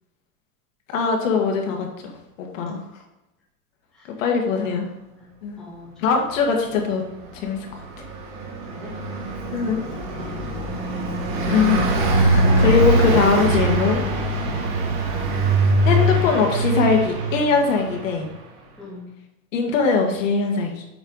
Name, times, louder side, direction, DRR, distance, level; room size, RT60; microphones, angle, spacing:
voice 1, 0.9-2.8 4.2-4.8 5.4-5.6 6.0-7.0 7.3-7.7 9.5-9.8 11.5-11.8 12.2-14.0 15.8-18.3 19.5-20.8, left 5 dB, 60° left, 1 dB, 2.0 m, -21 dB
voice 2, 5.6-6.4 8.6-8.9 9.4-10.4 14.5-14.8 18.8-19.1, left 2 dB, ahead, -7 dB, 0.6 m, -43 dB
Car passing by, 7.3-18.3, right 2 dB, 45° right, 1.9 m, -22 dB
8.0 x 5.5 x 4.1 m, 0.92 s
supercardioid pair, 175°, 43 cm